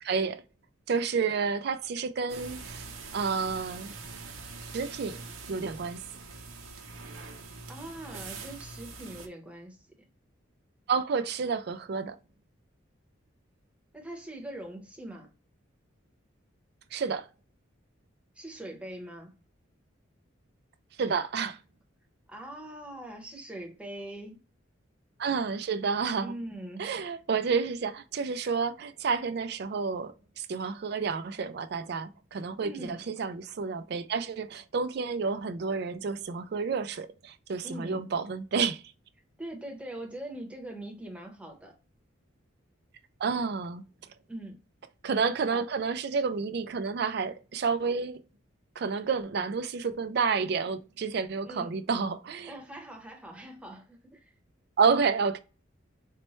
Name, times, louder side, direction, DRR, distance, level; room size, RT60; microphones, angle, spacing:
voice 1, 0.0-0.4 0.9-2.8 3.1-3.9 4.7-5.2 5.5-6.0 10.9-12.2 16.9-17.3 21.0-21.6 25.2-26.3 26.8-38.8 43.2-43.8 45.0-48.2 48.8-52.5 54.8-55.4, right 5 dB, 50° right, 0.3 m, -30 dB
sound 1, 2.3-9.3, right 4 dB, 80° right, 0.7 m, -44 dB
voice 2, 7.7-9.9 13.9-15.3 18.3-19.3 22.3-24.4 26.2-26.9 32.6-33.0 37.6-38.0 39.4-41.7 44.3-44.6 45.5-45.6 51.4-51.7 52.4-54.3, right 1 dB, 5° right, 0.8 m, -42 dB
4.2 x 2.1 x 3.0 m
head